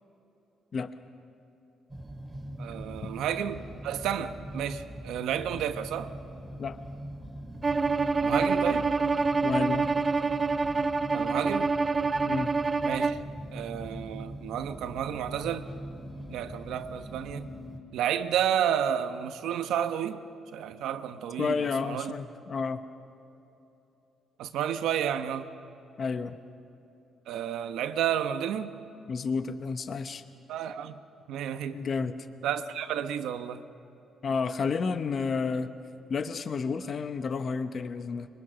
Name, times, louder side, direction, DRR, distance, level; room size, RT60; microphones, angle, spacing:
sound 1, 1.9-17.8, right 1 dB, 10° right, 2.7 m, -42 dB
voice 1, 2.6-6.1 8.2-8.9 11.1-11.7 12.8-13.2 13.5-15.7 16.3-17.5 17.9-20.2 20.5-22.1 24.4-25.5 27.3-28.7 30.5-31.0 31.3-31.8 32.4-33.6, right 9 dB, 85° right, 9 dB, 1.0 m, -31 dB
Bowed string instrument, 7.6-13.2, right 4 dB, 25° right, 0.5 m, -26 dB
voice 2, 9.4-9.9 12.2-12.5 21.4-22.8 26.0-26.4 29.1-30.2 31.7-32.1 34.2-35.7 36.1-38.3, left 5 dB, 45° left, 10 dB, 0.9 m, -31 dB
25.5 x 22.5 x 6.1 m, 2.9 s
cardioid pair, 105°, 0 cm